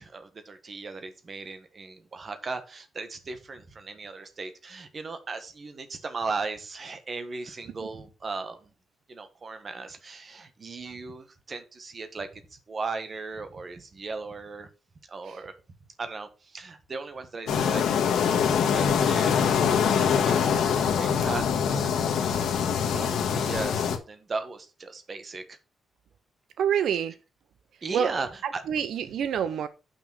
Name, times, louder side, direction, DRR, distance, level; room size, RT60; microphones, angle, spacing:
voice 1, 0.0-8.7 9.1-14.7 15.1-15.5 16.0-21.4 21.7-25.6 27.8-28.6, right 4 dB, 30° right, 1.3 m, -37 dB
sound 1, 17.5-24.0, left 7 dB, 90° left, 1.5 m, -24 dB
voice 2, 26.6-27.1 27.9-28.1 28.7-29.7, right 8 dB, 75° right, 0.6 m, -26 dB
6.7 x 6.0 x 6.2 m
wide cardioid pair, 165°, 0 cm